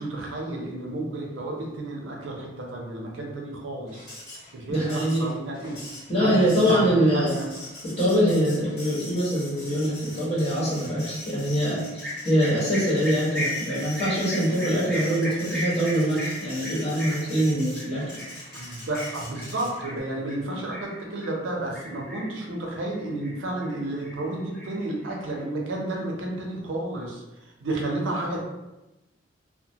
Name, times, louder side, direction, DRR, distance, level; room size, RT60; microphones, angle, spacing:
voice 1, 0.0-4.2 4.5-5.8 6.2-7.5 18.5-27.2 27.6-28.4, right 2 dB, 85° right, -1 dB, 0.5 m, -31 dB
Printer, 3.9-20.0, left 1 dB, 55° left, 1.0 m, -42 dB
voice 2, 4.7-5.3 6.1-7.3 8.0-18.2, equal, 35° left, -9 dB, 1.0 m, -24 dB
sound 1, 12.0-21.4 21.7-22.5 22.8-23.8 24.0-25.4, equal, 5° left, 0.6 m, -36 dB
2.1 x 2.1 x 2.7 m, 0.99 s
head